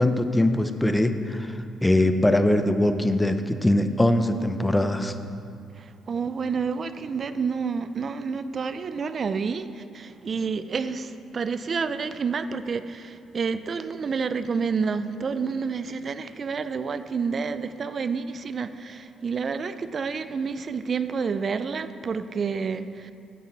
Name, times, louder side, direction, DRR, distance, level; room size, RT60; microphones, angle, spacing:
voice 1, 0.0-1.5 1.8-5.1, left 1 dB, 10° left, 8 dB, 0.6 m, -22 dB
voice 2, 6.1-23.1, right 5 dB, 45° right, 12 dB, 0.4 m, -29 dB
9.2 x 8.2 x 4.4 m, 2.5 s
cardioid pair, 90°, 0 cm